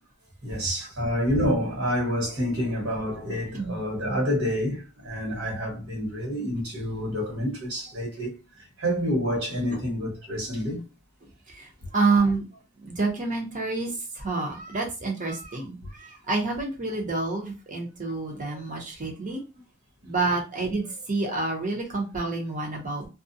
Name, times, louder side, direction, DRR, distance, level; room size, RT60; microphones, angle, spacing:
voice 1, 0.4-8.4 8.8-10.8, equal, 75° right, 1.4 m, -28 dB
voice 2, 11.9-12.4 12.8-13.9 14.2-19.4 20.0-23.1, right 3 dB, 40° right, 0.7 m, -28 dB
2.4 x 2.1 x 2.6 m
head